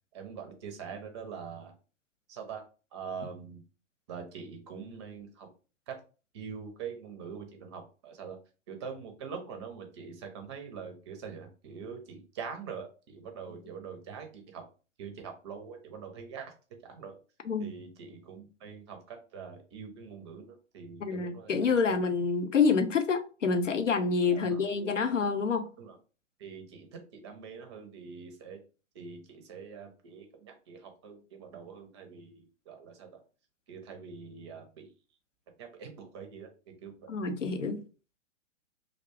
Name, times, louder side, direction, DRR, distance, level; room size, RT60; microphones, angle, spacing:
voice 1, 0.1-1.7 2.3-2.6 2.9-3.6 4.1-5.5 5.9-6.0 6.3-8.4 8.7-14.6 15.0-16.5 16.8-17.1 17.6-21.9 24.3-24.6 25.8-26.0 26.4-28.6 28.9-33.2 33.7-34.9 35.6-36.5 36.8-37.1, right 6 dB, 25° right, 0.5 m, -44 dB
voice 2, 21.0-25.7 37.1-37.8, left 5 dB, 80° left, 0.6 m, -27 dB
2.4 x 2.1 x 3.3 m
figure-of-eight pair, 115°, 36 cm